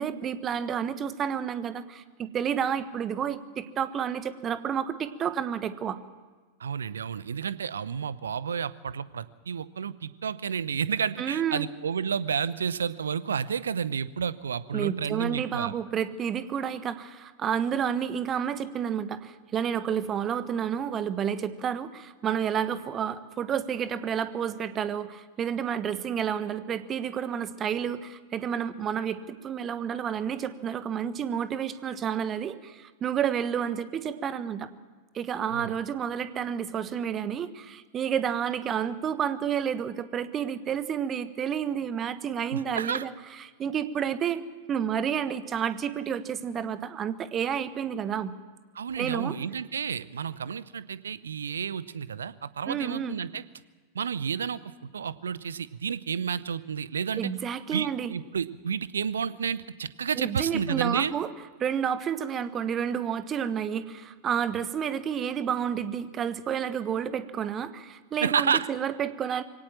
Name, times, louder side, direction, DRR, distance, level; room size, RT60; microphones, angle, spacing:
voice 1, 0.0-6.0 11.2-11.7 14.7-34.7 35.1-43.1 43.4-44.4 44.7-48.3 49.0-49.4 52.7-53.2 57.2-58.1 60.2-61.3 61.6-69.4, right 8 dB, 25° right, 13 dB, 1.3 m, -30 dB
voice 2, 6.6-15.7 35.5-35.7 42.5-43.1 48.7-53.4 53.9-57.3 57.7-61.1 68.2-68.7, right 7 dB, 70° right, 18 dB, 0.8 m, -31 dB
23.5 x 17.5 x 7.4 m, 1.4 s
figure-of-eight pair, 90°, 0 cm